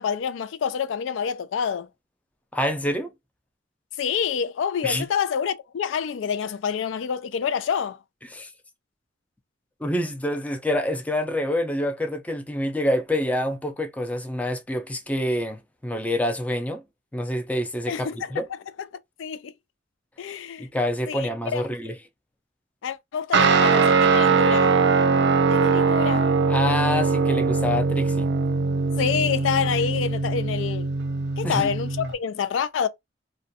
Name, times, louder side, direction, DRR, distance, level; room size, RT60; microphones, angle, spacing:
voice 1, 0.0-1.9 4.0-8.0 17.9-18.3 19.2-19.5 20.2-20.7 21.1-21.7 22.8-24.7 25.5-26.3 29.0-30.9 31.4-32.9, left 7 dB, 85° left, 0.3 m, -27 dB
voice 2, 2.5-3.1 4.8-5.1 8.3-8.5 9.8-16.8 17.1-18.4 20.6-21.9 26.5-28.3 31.4-31.7, left 1 dB, 10° left, 0.4 m, -27 dB
Guitar, 23.3-32.1, right 4 dB, 65° right, 0.4 m, -21 dB
2.4 x 2.2 x 2.6 m
head